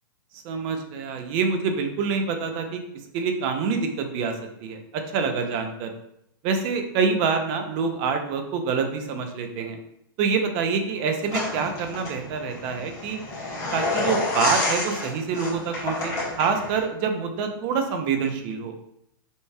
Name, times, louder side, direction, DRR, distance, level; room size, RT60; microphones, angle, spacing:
voice 1, 0.3-2.8 3.1-5.9 6.4-9.8 10.2-13.2 13.7-18.7, right 5 dB, 40° right, 6 dB, 0.6 m, -26 dB
sound 1, 11.3-16.8, left 2 dB, 25° left, 1.4 m, -29 dB
5.4 x 3.1 x 2.3 m, 0.77 s
hypercardioid pair, 140°, 12 cm